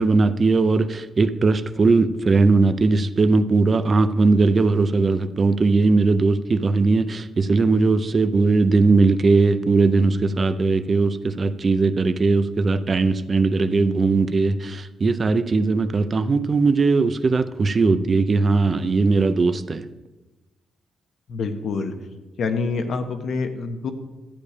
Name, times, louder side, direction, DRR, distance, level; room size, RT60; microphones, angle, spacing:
voice 1, 0.0-19.8, right 3 dB, 30° right, 11 dB, 0.5 m, -19 dB
voice 2, 21.3-21.9 22.4-23.9, left 4 dB, 55° left, 7 dB, 1.0 m, -26 dB
12.0 x 8.5 x 5.0 m, 1.1 s
wide cardioid pair, 165°, 0 cm